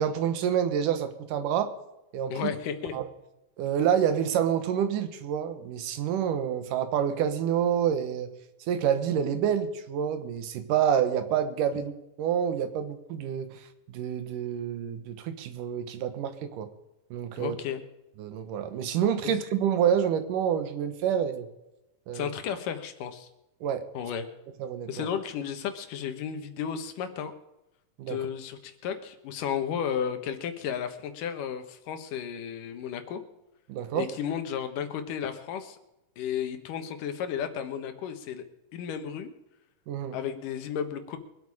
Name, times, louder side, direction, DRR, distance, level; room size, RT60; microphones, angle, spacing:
voice 1, 0.0-1.7 2.1-2.5 2.9-3.1 3.6-8.3 8.7-11.9 12.2-13.6 13.9-16.7 17.1-17.6 18.2-21.5 22.1-22.3 23.6-23.9 24.6-25.1 28.0-28.2 33.7-34.1 39.9-40.2, right 9 dB, 85° right, 9 dB, 2.8 m, -28 dB
voice 2, 2.3-3.0 17.4-17.8 19.2-19.3 22.1-23.3 23.9-24.3 24.9-27.3 28.1-33.2 33.9-35.8 36.2-38.4 38.7-39.3 40.1-41.2, left 8 dB, 90° left, 8 dB, 2.9 m, -33 dB
24.0 x 8.5 x 4.9 m, 0.94 s
omnidirectional pair, 3.6 m